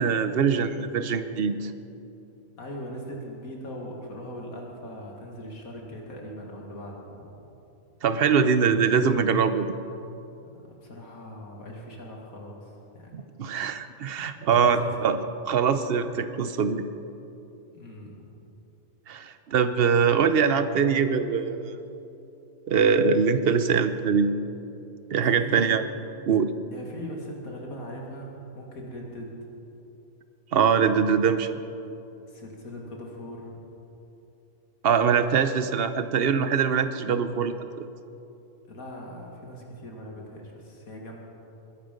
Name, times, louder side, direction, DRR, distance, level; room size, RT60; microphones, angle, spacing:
voice 1, 0.0-1.7 8.0-9.7 13.1-15.2 15.5-16.8 19.1-21.8 22.7-24.3 25.1-25.8 26.3-26.5 30.5-31.5 34.8-37.8, right 6 dB, 50° right, 10 dB, 0.8 m, -23 dB
voice 2, 2.6-7.3 10.8-13.3 14.5-15.0 17.7-18.3 25.3-25.8 26.7-29.3 32.3-33.6 38.7-41.2, equal, 70° left, -1 dB, 2.5 m, -40 dB
21.0 x 11.5 x 5.3 m, 2.8 s
omnidirectional pair, 1.5 m